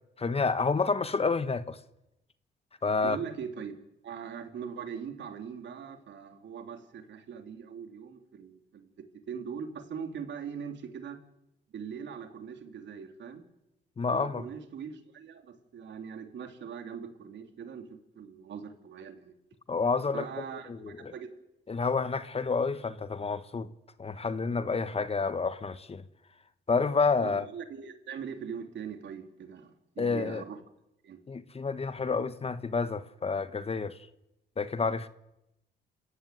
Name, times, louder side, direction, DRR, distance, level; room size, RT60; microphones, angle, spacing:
voice 1, 0.2-1.8 2.8-3.2 14.0-14.4 19.7-20.2 20.7-21.1 21.7-23.7 24.0-26.0 26.7-27.5 30.0-30.4 31.3-34.0 34.6-35.1, left 4 dB, 30° left, 1.3 m, -29 dB
voice 2, 3.0-3.7 4.0-11.2 11.7-13.4 14.1-17.9 18.1-19.4 20.1-21.3 27.2-30.6 31.0-31.2, right 7 dB, 65° right, 3.3 m, -41 dB
28.0 x 15.5 x 9.5 m
cardioid pair, 90°, 20 cm